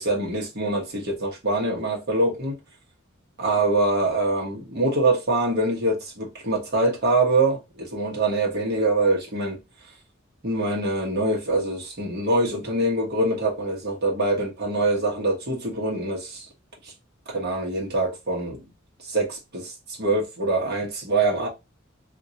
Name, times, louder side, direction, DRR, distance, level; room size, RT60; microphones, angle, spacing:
voice 1, 0.0-2.6 3.4-9.6 10.4-16.4 17.3-18.6 19.1-19.7 20.0-21.5, right 2 dB, 55° right, 1.2 m, -24 dB
2.8 x 2.8 x 2.6 m
head